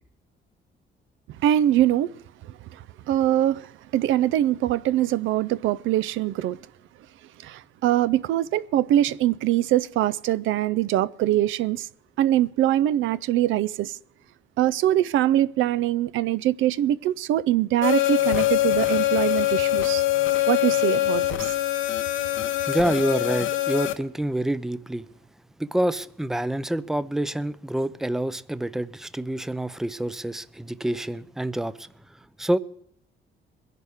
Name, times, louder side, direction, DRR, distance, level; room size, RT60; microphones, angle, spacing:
voice 1, 1.4-2.1 2.4-6.6 7.4-11.9 12.2-14.0 14.6-20.0 20.5-21.6, right 13 dB, 85° right, 0.5 m, -23 dB
sound 1, 17.8-23.9, left 15 dB, 80° left, 0.8 m, -23 dB
voice 2, 22.7-25.0 25.6-31.9 32.4-32.6, right 1 dB, ahead, 0.5 m, -27 dB
22.0 x 11.0 x 3.5 m
cardioid pair, 90°, 20 cm